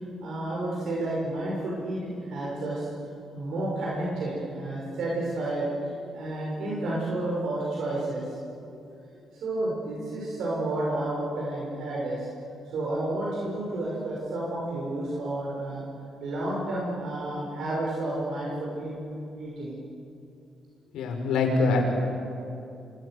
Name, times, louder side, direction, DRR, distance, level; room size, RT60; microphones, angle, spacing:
voice 1, 0.2-2.9 3.3-8.9 9.1-12.3 12.7-15.8 16.2-19.8, right 1 dB, 75° right, -5 dB, 6.6 m, -31 dB
voice 2, 20.9-21.8, left 3 dB, 85° left, 2 dB, 5.4 m, -24 dB
28.0 x 23.5 x 6.6 m, 2.6 s
cardioid pair, 90°, 0 cm